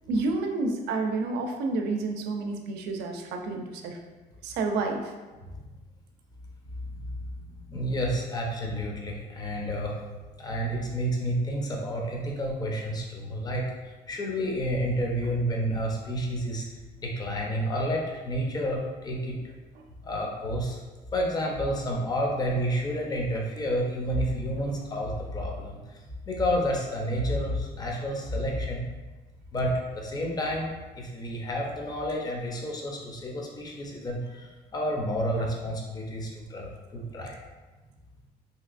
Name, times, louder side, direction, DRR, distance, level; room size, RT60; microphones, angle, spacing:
voice 1, 0.1-4.0 4.4-5.1 19.8-19.9 24.6-24.7 35.4-35.5, right 3 dB, 80° right, 3 dB, 0.5 m, -30 dB
voice 2, 7.7-10.0 10.4-13.6 14.1-16.7 17.0-19.4 20.0-20.8 21.1-25.8 26.2-28.8 29.5-30.7 30.9-37.4, equal, 25° left, -1 dB, 0.6 m, -30 dB
3.1 x 2.8 x 2.4 m, 1.2 s
cardioid pair, 110°, 17 cm